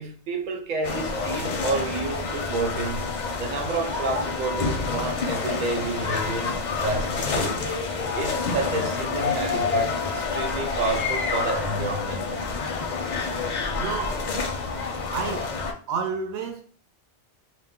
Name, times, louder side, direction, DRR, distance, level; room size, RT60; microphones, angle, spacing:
voice 1, 0.0-7.7 8.1-12.4, right 3 dB, 60° right, 0.6 m, -30 dB
sound 1, 0.8-15.7, left 4 dB, 55° left, 0.5 m, -28 dB
voice 2, 13.7-14.2 15.1-15.5 15.9-16.6, right 5 dB, 80° right, 0.9 m, -30 dB
2.3 x 2.0 x 3.5 m
omnidirectional pair, 1.1 m